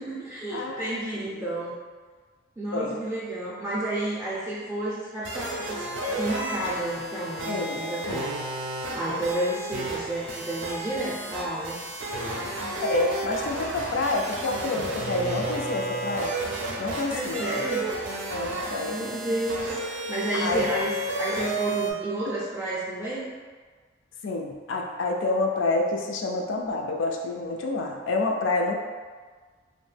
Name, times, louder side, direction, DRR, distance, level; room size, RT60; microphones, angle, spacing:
voice 1, 0.0-1.8 2.6-8.5 8.9-11.8 17.1-17.9 18.9-19.8 20.1-23.3, right 1 dB, 15° right, -9 dB, 0.4 m, -31 dB
voice 2, 0.5-1.5 2.7-3.0 7.5-7.8 8.1-8.3 9.0-9.3 12.8-16.3 16.8-17.5 18.3-19.1 20.4-20.7 24.2-28.7, left 2 dB, 75° left, 1 dB, 0.4 m, -28 dB
sound 1, 5.2-21.9, right 2 dB, 75° right, 0.5 m, -32 dB
2.5 x 2.1 x 3.2 m, 1.5 s
head